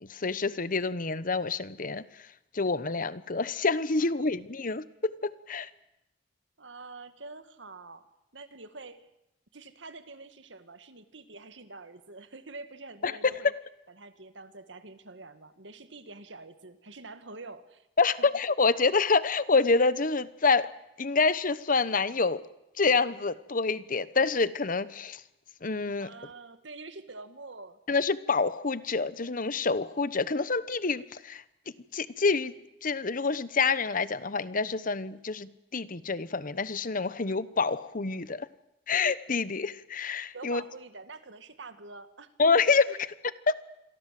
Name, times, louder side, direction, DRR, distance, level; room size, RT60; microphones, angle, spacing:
voice 1, 0.0-2.0 2.5-5.7 13.0-13.1 13.4-13.5 18.0-20.7 21.0-22.4 22.8-25.2 25.6-26.1 27.9-31.4 31.9-32.5 32.8-38.5 38.9-40.6 42.4-42.9 43.5-43.6, left 4 dB, 50° left, 16 dB, 1.1 m, -27 dB
voice 2, 4.0-4.3 6.6-8.0 8.3-9.1 9.5-13.5 14.0-17.9 25.9-27.8 40.3-42.3 42.9-43.0, right 3 dB, 85° right, 10 dB, 2.0 m, -46 dB
27.5 x 23.0 x 7.7 m, 0.86 s
head